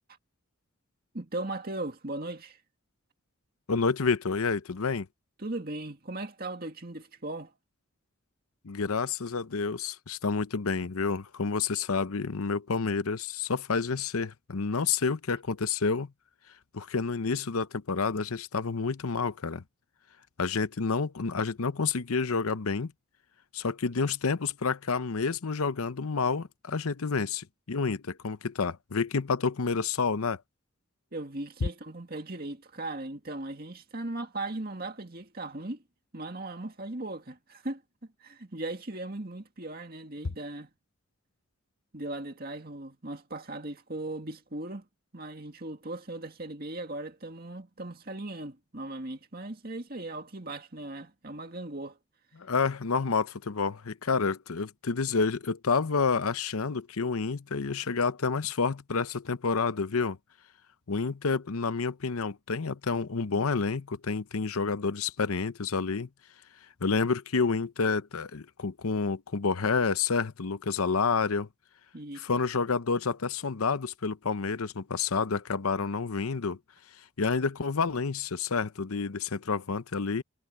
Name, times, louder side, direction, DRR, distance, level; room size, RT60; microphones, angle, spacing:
voice 1, 1.1-2.6 5.4-7.5 31.1-35.8 36.1-37.8 38.2-40.7 41.9-44.9 45.1-52.0 71.9-72.2, right 2 dB, 45° right, 2.2 m, -38 dB
voice 2, 3.7-5.1 8.6-16.1 16.7-19.6 20.4-22.9 23.5-30.4 31.6-31.7 52.4-60.2 60.9-66.1 66.8-71.5 72.1-76.6 77.2-80.2, left 4 dB, 85° left, 0.8 m, -29 dB
head